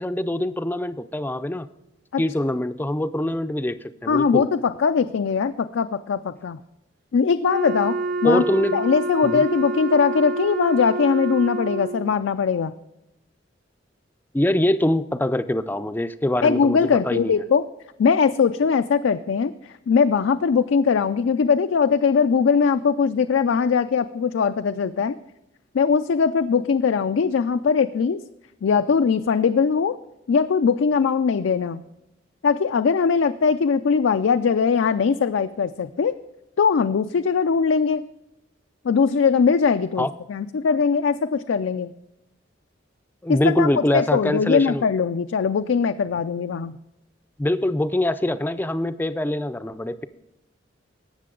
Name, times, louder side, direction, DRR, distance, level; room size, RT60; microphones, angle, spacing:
voice 1, 0.0-1.7 2.2-4.5 8.2-8.8 9.2-9.4 14.3-17.4 40.0-40.1 43.2-44.8 47.4-50.1, left 1 dB, 10° left, 12 dB, 0.4 m, -24 dB
voice 2, 4.1-6.6 7.1-8.4 8.7-12.7 16.4-17.6 18.0-25.2 25.7-28.2 28.6-30.0 30.3-31.8 32.4-36.1 36.6-38.0 38.8-41.9 43.3-46.8, left 5 dB, 80° left, 9 dB, 0.4 m, -21 dB
Wind instrument woodwind instrument, 7.4-12.1, right 2 dB, 45° right, 0.7 m, -28 dB
18.5 x 6.7 x 3.8 m, 0.94 s
head